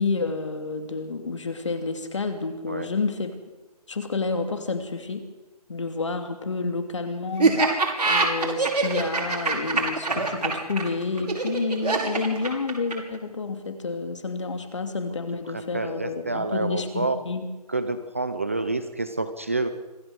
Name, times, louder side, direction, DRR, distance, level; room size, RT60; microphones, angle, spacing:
voice 1, 0.0-3.3 3.9-5.2 5.7-7.8 8.1-17.5, left 4 dB, 50° left, 7 dB, 2.8 m, -29 dB
Laughter, 7.4-13.2, right 3 dB, 80° right, 6.0 m, -23 dB
voice 2, 15.5-17.2 17.7-19.7, right 3 dB, 20° right, 10 dB, 0.6 m, -28 dB
26.0 x 13.5 x 7.9 m, 1.1 s
hypercardioid pair, 180°, 20 cm